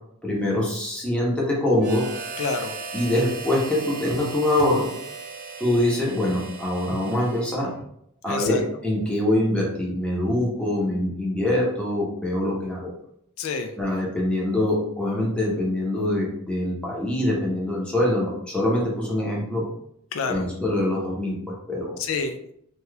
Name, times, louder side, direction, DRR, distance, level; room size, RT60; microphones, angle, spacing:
voice 1, 0.2-2.1 2.9-4.9 5.6-7.7 8.2-12.9 13.8-19.7 20.3-21.9, left 1 dB, 5° left, -4 dB, 0.8 m, -24 dB
Harmonica, 1.8-7.8, right 4 dB, 40° right, 0.4 m, -37 dB
voice 2, 2.4-2.7 8.3-8.6 13.4-13.7 20.1-20.5 22.0-22.5, left 4 dB, 65° left, 7 dB, 0.3 m, -28 dB
2.8 x 2.3 x 3.1 m, 0.71 s
head